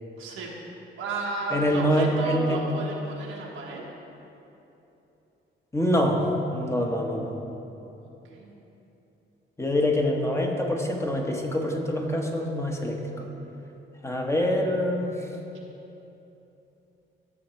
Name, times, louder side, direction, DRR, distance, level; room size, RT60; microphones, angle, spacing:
voice 1, 0.2-0.5 1.0-3.8 8.0-8.5, right 2 dB, 90° right, -2 dB, 1.4 m, -33 dB
voice 2, 1.5-2.6 5.7-6.2 6.5-7.3 9.6-13.3 14.0-15.2, equal, 15° left, 1 dB, 1.0 m, -25 dB
13.5 x 6.7 x 3.1 m, 3.0 s
cardioid pair, 85°, 20 cm